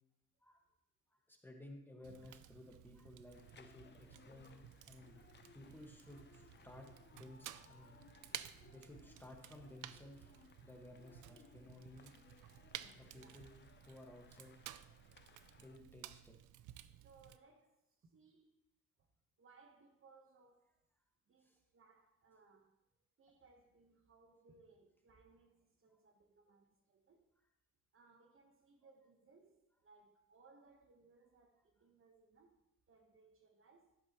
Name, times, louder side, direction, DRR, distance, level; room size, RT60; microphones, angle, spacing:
voice 1, 1.1-5.2 5.5-8.0 8.7-10.3 10.6-12.1 12.9-14.7 15.6-16.3 21.4-21.6 25.9-26.0, left 1 dB, 5° left, 1.6 m, -57 dB
Fire, 2.0-17.4, right 13 dB, 80° right, 0.5 m, -55 dB
sound 1, 3.3-15.8, left 6 dB, 35° left, 0.6 m, -65 dB
voice 2, 13.0-13.5 17.0-18.6 19.4-20.8 21.3-22.8 23.2-27.3 27.9-34.0, right 4 dB, 45° right, 1.2 m, -67 dB
11.0 x 7.9 x 3.0 m
cardioid pair, 90°, 30 cm